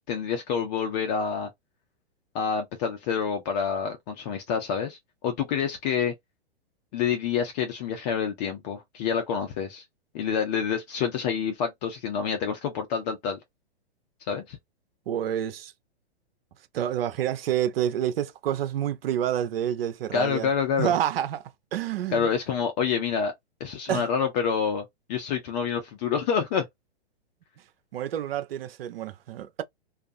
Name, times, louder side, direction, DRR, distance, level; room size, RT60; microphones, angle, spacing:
voice 1, 0.1-1.5 2.3-6.1 6.9-9.8 10.1-13.4 14.3-14.6 20.1-20.9 22.1-23.3 23.6-24.8 25.1-26.7, left 7 dB, 40° left, 0.8 m, -27 dB
voice 2, 15.1-15.7 16.7-20.5 20.8-22.3 23.9-24.1 27.9-29.6, right 10 dB, 65° right, 0.6 m, -28 dB
2.4 x 2.4 x 2.6 m
hypercardioid pair, 120°, 32 cm